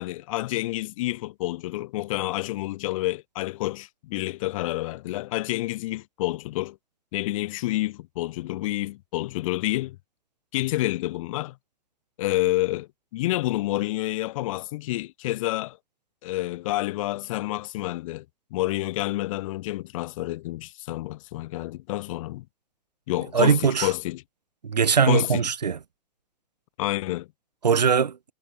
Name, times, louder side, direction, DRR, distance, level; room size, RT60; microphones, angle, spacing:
voice 1, 0.0-6.8 7.1-10.0 10.5-11.6 12.2-15.8 16.2-18.2 18.5-22.4 23.1-24.2 25.1-25.5 26.8-27.3, left 17 dB, 55° left, 1.5 m, -28 dB
voice 2, 23.3-23.9 24.6-25.8 27.6-28.2, right 6 dB, 85° right, 0.7 m, -21 dB
figure-of-eight pair, 105°, 21 cm